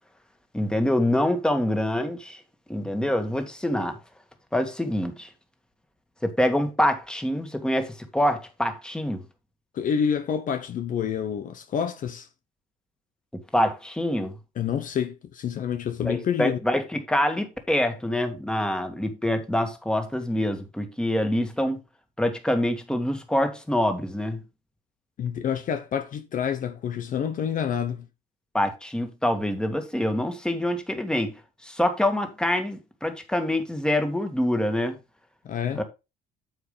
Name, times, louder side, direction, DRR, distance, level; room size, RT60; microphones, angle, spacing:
voice 1, 0.5-2.4 2.7-4.0 4.5-5.3 6.2-9.2 13.5-14.3 16.0-21.8 22.2-24.4 28.5-31.3 31.6-35.0 35.8-35.9, left 1 dB, 5° left, 1.9 m, -25 dB
voice 2, 9.7-12.3 14.5-16.6 25.2-28.1 35.4-35.8, left 8 dB, 50° left, 0.9 m, -28 dB
9.3 x 7.2 x 3.4 m
cardioid pair, 110°, 17 cm